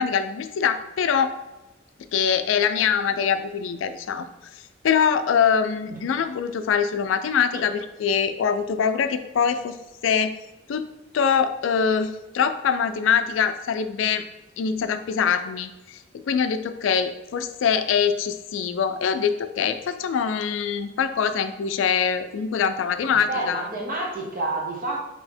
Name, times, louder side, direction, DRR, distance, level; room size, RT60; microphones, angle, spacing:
voice 1, 0.0-1.3 2.1-9.8 10.0-10.4 10.7-10.9 11.1-14.2 14.6-23.6, left 7 dB, 70° left, 10 dB, 0.3 m, -23 dB
voice 2, 23.1-25.0, right 2 dB, 45° right, -1 dB, 1.0 m, -29 dB
4.2 x 2.8 x 4.3 m, 1.0 s
head